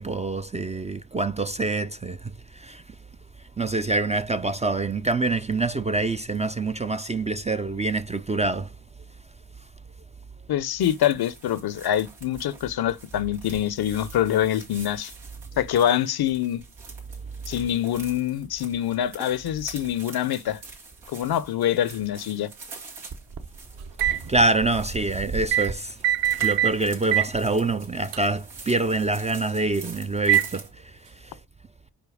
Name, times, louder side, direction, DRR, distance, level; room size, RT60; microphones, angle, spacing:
voice 1, 0.0-2.8 3.6-8.7 24.3-26.0 26.3-31.4, right 2 dB, 15° right, 0.4 m, -26 dB
voice 2, 10.5-15.1 15.6-16.6 17.5-20.6 21.1-22.5, left 11 dB, 60° left, 0.6 m, -25 dB
sound 1, 10.8-30.7, right 4 dB, 90° right, 1.9 m, -46 dB
sound 2, 22.1-22.2 22.5-22.6 23.1-28.3, right 4 dB, 50° right, 1.0 m, -38 dB
oven door and beeps, 24.0-24.2 25.5-25.7 26.0-26.8 27.1-27.3 28.1-28.2 30.3-30.6, right 11 dB, 75° right, 0.6 m, -22 dB
5.2 x 4.5 x 4.8 m
supercardioid pair, 45°, 42 cm